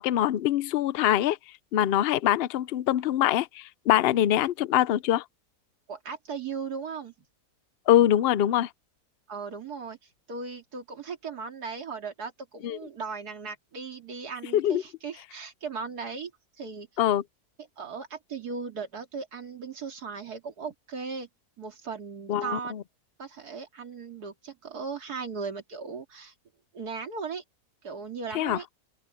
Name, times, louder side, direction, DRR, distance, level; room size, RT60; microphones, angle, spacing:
voice 1, 0.0-1.4 1.7-5.2 7.9-8.7 12.6-12.8 14.5-14.8 17.0-17.2 22.3-22.8 28.3-28.6, left 12 dB, 65° left, 0.6 m, -23 dB
voice 2, 5.9-7.1 9.3-10.0 10.3-16.3 16.6-16.9 17.8-21.3 21.6-22.7 23.2-26.3 26.7-27.4 27.8-28.7, right 5 dB, 85° right, 2.8 m, -37 dB
open air
omnidirectional pair, 1.6 m